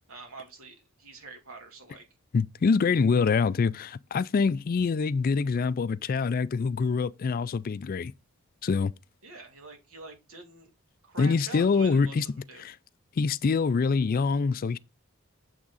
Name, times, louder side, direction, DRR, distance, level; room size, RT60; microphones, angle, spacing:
voice 1, 0.1-2.0 9.2-10.7 11.0-12.6, right 3 dB, 75° right, 2.8 m, -45 dB
voice 2, 2.3-8.1 8.6-8.9 11.2-12.3 12.6-12.7 13.2-14.8, left 5 dB, 40° left, 0.3 m, -25 dB
7.2 x 6.1 x 4.0 m
head